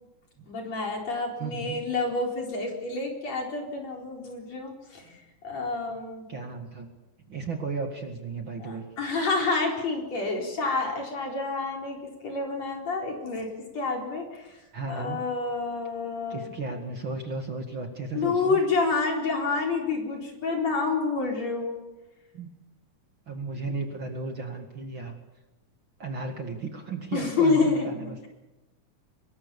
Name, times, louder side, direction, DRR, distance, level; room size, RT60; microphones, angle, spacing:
voice 1, 0.5-5.2 5.4-6.3 8.6-12.0 12.2-13.5 13.7-14.5 14.9-16.4 18.1-21.8 27.1-27.9, left 4 dB, 55° left, 1 dB, 5.4 m, -28 dB
voice 2, 1.4-1.8 6.3-6.9 7.3-8.8 14.7-15.2 16.3-18.6 22.3-22.5 23.3-25.1 26.0-28.2, right 3 dB, 40° right, 4 dB, 2.6 m, -34 dB
25.5 x 22.0 x 7.1 m, 1.1 s
omnidirectional pair, 3.7 m